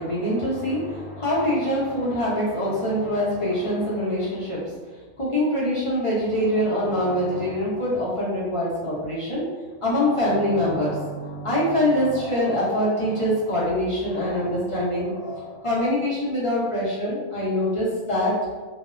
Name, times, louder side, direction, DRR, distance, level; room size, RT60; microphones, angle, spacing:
voice 1, 0.0-4.8 5.2-9.5 9.8-18.4, left 1 dB, 40° left, -8 dB, 0.4 m, -24 dB
2.5 x 2.1 x 2.4 m, 1.4 s
omnidirectional pair, 1.5 m